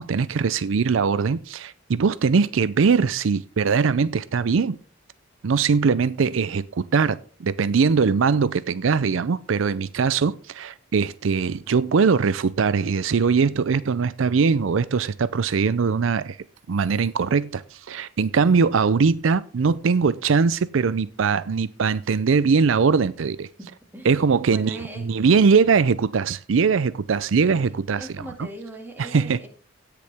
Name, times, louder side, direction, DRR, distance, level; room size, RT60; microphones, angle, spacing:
voice 1, 0.0-4.8 5.4-16.4 16.7-23.5 24.0-28.5 29.0-29.4, right 5 dB, 80° right, 0.5 m, -21 dB
voice 2, 24.5-25.1 27.5-29.5, right 1 dB, 10° right, 2.2 m, -39 dB
17.5 x 6.8 x 3.5 m
head